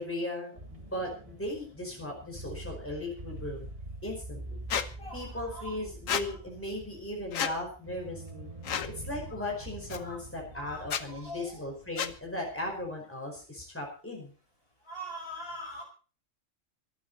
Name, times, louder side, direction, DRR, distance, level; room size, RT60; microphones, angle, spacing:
voice 1, 0.0-3.7 4.0-4.6 5.1-8.5 8.9-14.3, left 1 dB, 10° left, 0 dB, 5.1 m, -37 dB
sound 1, 0.6-12.9, right 1 dB, 25° right, 1.8 m, -46 dB
Squeak, 4.7-4.9 6.1-6.2 7.3-7.5 8.6-8.9 9.9-10.0 10.8-11.0 12.0-12.1, left 8 dB, 80° left, 1.4 m, -30 dB
voice 2, 5.0-5.7 10.0-10.2 10.5-10.8 11.1-11.6 14.8-15.8, equal, 45° left, 2 dB, 6.0 m, -42 dB
25.5 x 8.5 x 4.2 m, 0.38 s
omnidirectional pair, 1.3 m